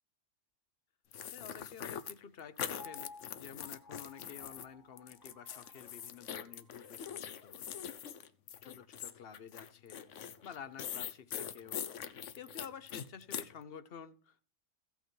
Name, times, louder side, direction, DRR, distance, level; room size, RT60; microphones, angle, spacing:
sound 1, 1.1-4.6 5.0-13.5, left 9 dB, 75° left, 1.1 m, -43 dB
voice 1, 1.3-7.9 8.6-10.1 10.4-14.4, left 7 dB, 55° left, 14 dB, 1.0 m, -51 dB
Piano, 2.8-6.9 7.4-7.5, left 3 dB, 15° left, 1.2 m, -56 dB
16.0 x 5.8 x 4.5 m, 0.41 s
omnidirectional pair, 1.3 m